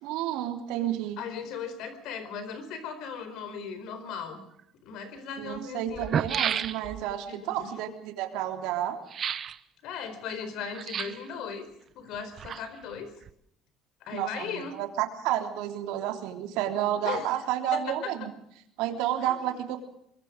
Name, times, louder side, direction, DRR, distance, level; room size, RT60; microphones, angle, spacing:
voice 1, 0.0-1.2 5.4-9.0 14.1-18.3 18.8-19.8, right 11 dB, 80° right, 5 dB, 3.4 m, -31 dB
voice 2, 1.2-4.4 4.8-6.2 7.3-7.7 9.8-11.7 12.0-13.1 14.0-14.8 17.0-17.3 17.7-18.3 19.2-19.5, left 6 dB, 65° left, 10 dB, 4.3 m, -37 dB
sound 1, 4.6-4.7 5.6-5.7 5.9-7.1 9.1-9.6 10.7-11.3 12.1-12.9 13.2-13.3, right 8 dB, 35° right, 0.9 m, -31 dB
24.0 x 22.0 x 5.2 m, 0.74 s
cardioid pair, 150°, 0 cm